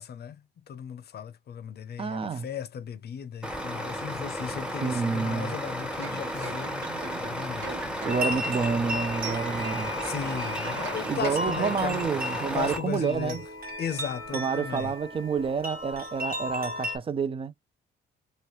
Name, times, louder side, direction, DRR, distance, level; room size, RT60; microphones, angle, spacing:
voice 1, 0.0-7.8 10.0-12.1 12.5-13.4 13.8-14.9, left 8 dB, 55° left, 0.6 m, -36 dB
voice 2, 2.0-2.5 4.8-5.5 8.0-9.9 11.1-13.5 14.3-17.5, right 5 dB, 30° right, 0.4 m, -29 dB
Truck, 3.4-12.8, equal, 5° right, 0.8 m, -34 dB
sound 1, 6.0-12.3 12.6-12.7, right 5 dB, 65° right, 1.2 m, -42 dB
sound 2, 8.1-17.0, equal, 45° right, 1.2 m, -35 dB
3.2 x 2.8 x 3.0 m
cardioid pair, 90°, 20 cm